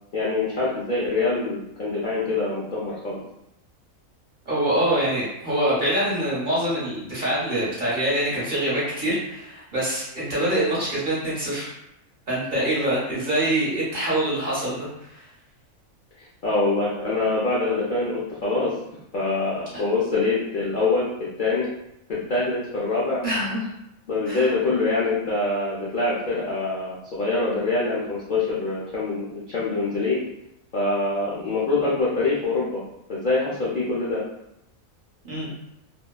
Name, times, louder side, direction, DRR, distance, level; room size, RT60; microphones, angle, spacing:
voice 1, 0.1-3.2 16.4-18.7 19.1-21.1 21.4-21.7 22.1-23.2 24.1-30.2 30.7-32.8 33.1-34.2, left 3 dB, 70° left, -7 dB, 0.4 m, -24 dB
voice 2, 4.5-11.7 12.3-15.3 19.7-19.8 23.2-23.7 24.3-24.5 35.2-35.5, right 1 dB, 40° right, -8 dB, 0.9 m, -25 dB
2.6 x 2.2 x 2.3 m, 0.83 s
omnidirectional pair, 1.5 m